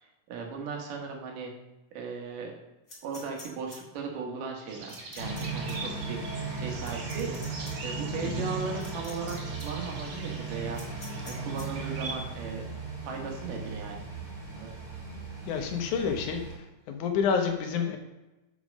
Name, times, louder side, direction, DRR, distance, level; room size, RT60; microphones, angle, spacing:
voice 1, 0.3-1.5 1.9-2.6 3.0-7.4 7.8-10.8 11.2-12.7 13.1-14.1 14.5-14.7, right 5 dB, 80° right, 1 dB, 2.9 m, -37 dB
sound 1, 2.9-3.8 4.9-5.4 5.7-5.8 6.8-7.7 8.8-9.3 9.6-9.7 10.7-11.6, left 2 dB, 15° left, 1.7 m, -47 dB
sound 2, 4.7-12.1, right 3 dB, 55° right, 2.0 m, -43 dB
sound 3, 5.2-16.5, right 4 dB, 15° right, 2.4 m, -37 dB
voice 2, 15.5-16.4 16.9-18.0, left 6 dB, 75° left, 5 dB, 2.2 m, -28 dB
6.6 x 6.3 x 5.2 m, 1.0 s
omnidirectional pair, 3.8 m